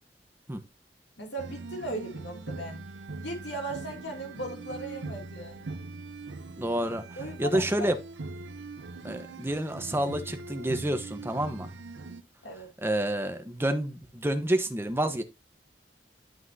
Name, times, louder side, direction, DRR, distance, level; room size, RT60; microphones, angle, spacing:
voice 1, 1.2-2.8 3.2-5.7 7.2-7.9 12.4-12.7, right 1 dB, 75° left, 2.6 m, -37 dB
sound 1, 1.4-12.2, right 3 dB, 85° right, 0.7 m, -41 dB
voice 2, 6.6-7.0 7.4-8.0 9.0-11.7 12.8-15.2, right 1 dB, 15° right, 1.0 m, -29 dB
11.5 x 5.9 x 2.7 m
head